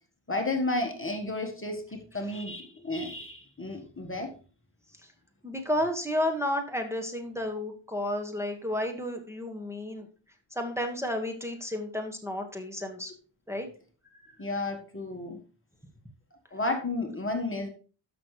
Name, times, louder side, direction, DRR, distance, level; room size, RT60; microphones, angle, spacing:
voice 1, 0.3-4.3 14.4-15.4 16.5-17.7, left 2 dB, 25° left, 3 dB, 1.5 m, -32 dB
voice 2, 5.4-10.1 10.5-13.1 13.5-13.7, left 1 dB, 5° right, 2 dB, 1.6 m, -32 dB
13.0 x 6.1 x 3.2 m, 0.37 s
wide cardioid pair, 80°, 48 cm